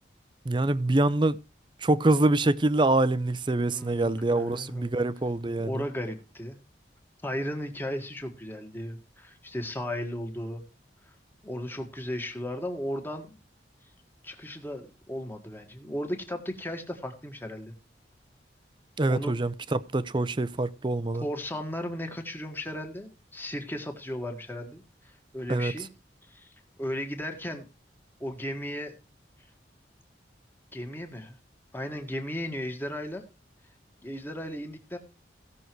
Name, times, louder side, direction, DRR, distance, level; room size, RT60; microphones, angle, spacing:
voice 1, 0.5-1.4 1.8-5.8 19.0-21.2 25.5-25.7, right 2 dB, 25° right, 0.5 m, -25 dB
voice 2, 3.7-4.9 5.6-6.6 7.2-10.6 11.4-13.3 14.2-17.7 19.1-19.3 21.2-25.9 26.3-26.5 26.8-27.7 28.2-28.9 30.7-31.4 31.7-33.2 34.0-35.0, equal, 10° left, 1.7 m, -35 dB
16.0 x 6.4 x 4.6 m
head